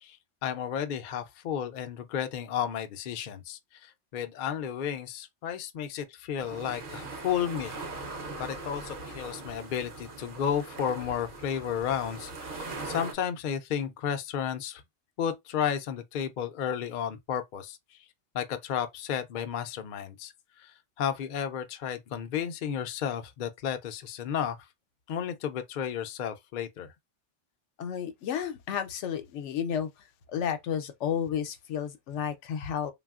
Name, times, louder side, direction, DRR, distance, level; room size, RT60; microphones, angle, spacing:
voice 1, 0.4-7.8 8.4-14.8 15.2-17.8 18.3-20.3 20.6-24.6 25.1-26.9, left 8 dB, 60° left, 0.5 m, -33 dB
sound 1, 6.4-13.1, right 3 dB, 50° right, 0.7 m, -40 dB
voice 2, 27.8-29.9 30.3-32.9, left 8 dB, 80° left, 0.9 m, -32 dB
3.3 x 2.3 x 2.3 m
omnidirectional pair, 1.2 m